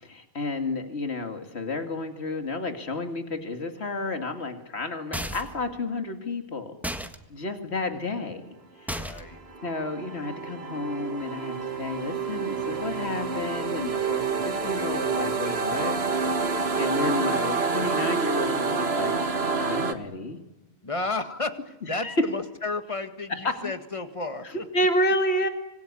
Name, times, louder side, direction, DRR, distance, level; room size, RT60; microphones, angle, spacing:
voice 1, 0.0-6.8 7.3-8.4 8.8-9.2 9.6-16.0 16.3-19.2 19.6-20.4 22.0-22.3 23.4-23.7 24.7-25.5, left 2 dB, 85° left, 6 dB, 2.5 m, -30 dB
sound 1, 5.1-5.6 6.8-7.2 8.9-9.4, equal, ahead, 1.6 m, -33 dB
voice 2, 8.9-9.4 20.8-24.7, left 3 dB, 30° left, 9 dB, 2.0 m, -32 dB
sound 2, 9.2-19.9, right 5 dB, 70° right, 2.0 m, -28 dB
26.0 x 20.5 x 9.9 m, 1.0 s
omnidirectional pair, 1.1 m